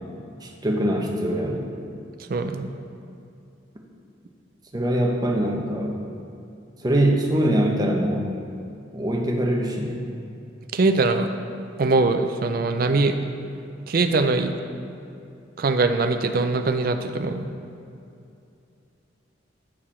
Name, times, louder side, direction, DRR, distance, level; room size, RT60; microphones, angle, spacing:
voice 1, 0.4-1.6 4.7-5.9 6.8-8.3 8.9-10.0, right 1 dB, 20° right, 0 dB, 0.7 m, -23 dB
voice 2, 2.3-2.7 10.7-11.3 11.8-13.2 13.9-14.5 15.6-17.5, right 3 dB, 50° right, 7 dB, 0.4 m, -22 dB
8.6 x 4.8 x 4.3 m, 2.6 s
head